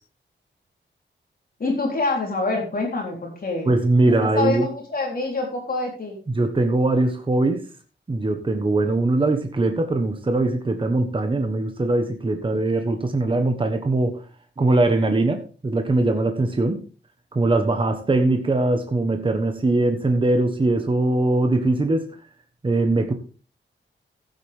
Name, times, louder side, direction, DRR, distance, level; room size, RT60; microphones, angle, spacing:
voice 1, 1.6-3.7 4.1-6.2, left 3 dB, 50° left, 0 dB, 3.8 m, -26 dB
voice 2, 3.7-4.7 6.3-7.6 8.1-14.2 14.6-16.8 17.3-22.1 22.6-23.1, right 2 dB, 25° right, 6 dB, 1.2 m, -21 dB
15.0 x 8.0 x 3.6 m, 0.36 s
wide cardioid pair, 170°, 20 cm